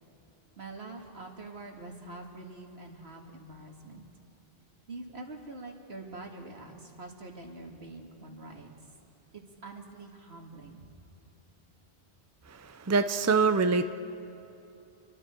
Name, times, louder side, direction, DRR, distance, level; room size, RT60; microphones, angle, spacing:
voice 1, 0.6-4.0 4.9-8.7 9.3-10.9, right 2 dB, 85° right, 1 dB, 2.5 m, -45 dB
voice 2, 12.5-13.8, right 4 dB, 20° right, 9 dB, 0.6 m, -25 dB
29.0 x 23.0 x 4.6 m, 2.9 s
omnidirectional pair, 1.0 m